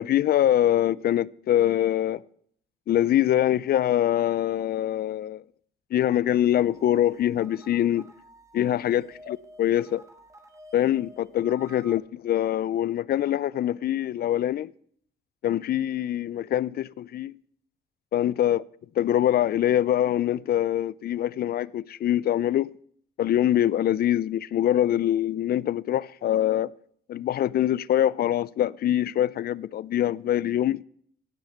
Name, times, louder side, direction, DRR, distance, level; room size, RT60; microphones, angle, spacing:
voice 1, 0.0-2.2 2.9-5.4 5.9-8.1 8.5-10.0 10.7-14.7 15.4-17.4 18.1-18.6 19.0-22.7 23.2-26.7 27.1-30.8, left 11 dB, 50° left, 0.4 m, -24 dB
sound 1, 6.6-12.0, right 1 dB, 15° right, 1.4 m, -51 dB
17.0 x 6.4 x 5.8 m
cardioid pair, 90°, 20 cm